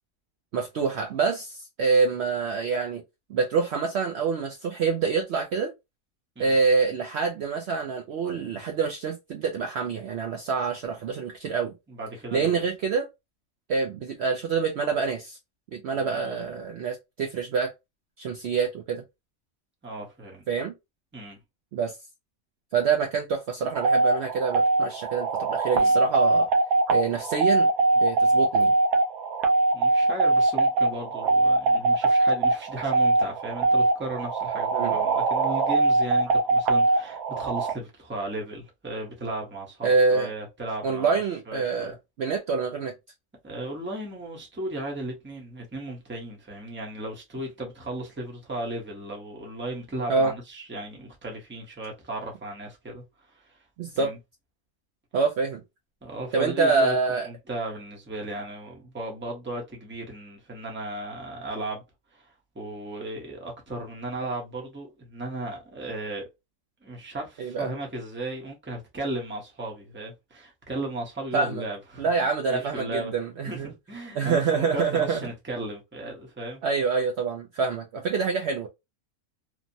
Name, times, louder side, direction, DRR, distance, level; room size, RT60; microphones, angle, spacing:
voice 1, 0.5-3.0 3.3-5.7 6.4-11.7 12.3-13.1 13.7-15.4 15.7-17.7 18.2-19.0 20.5-20.7 21.7-21.9 22.7-26.5 26.9-27.7 28.0-28.7 34.7-35.0 39.8-40.3 40.8-42.9 50.1-50.3 53.8-54.1 55.1-55.6 56.3-57.3 67.4-67.7 71.3-71.6 72.0-73.7 74.1-75.2 76.6-78.7, right 5 dB, 65° right, 0.7 m, -26 dB
voice 2, 11.9-12.6 15.9-16.5 19.8-20.4 21.1-21.4 25.7-26.0 29.7-41.2 41.5-41.9 43.4-53.6 53.9-54.2 56.0-61.8 62.1-66.2 66.8-73.1 73.4-76.6, right 1 dB, 10° right, 0.7 m, -36 dB
sound 1, 23.7-37.7, right 3 dB, 85° right, 1.1 m, -22 dB
3.1 x 2.1 x 2.6 m
omnidirectional pair, 1.5 m